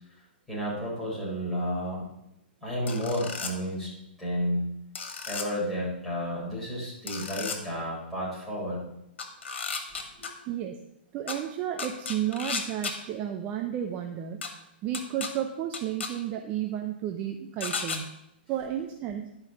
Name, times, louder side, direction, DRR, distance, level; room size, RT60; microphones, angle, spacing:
voice 1, 0.5-2.0 2.6-3.9 4.2-4.7 5.3-8.8 10.2-10.3, equal, ahead, -8 dB, 4.7 m, -31 dB
sound 1, 2.9-3.5 5.0-5.5 7.1-7.6 9.2-10.3 11.3-11.4 11.8-12.9 14.4-14.5 14.9-15.3 15.7-16.1 17.6-18.0, left 5 dB, 80° left, 2.0 m, -33 dB
voice 2, 10.5-10.8 11.1-14.5 14.8-18.1 18.5-19.3, right 10 dB, 25° right, 4 dB, 0.7 m, -32 dB
11.5 x 5.6 x 7.0 m, 0.83 s
hypercardioid pair, 155°, 6 cm